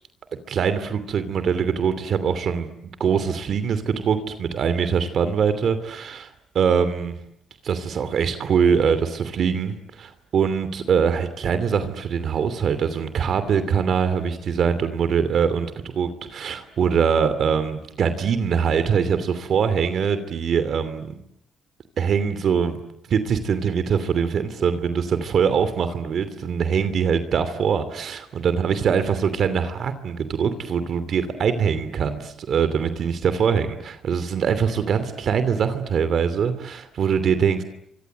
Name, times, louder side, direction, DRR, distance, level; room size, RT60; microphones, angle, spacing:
voice 1, 0.5-6.3 6.5-7.1 7.6-21.2 22.0-22.8 23.1-37.6, right 7 dB, 60° right, 12 dB, 2.8 m, -23 dB
30.0 x 25.0 x 8.0 m, 0.76 s
cardioid pair, 90°, 0 cm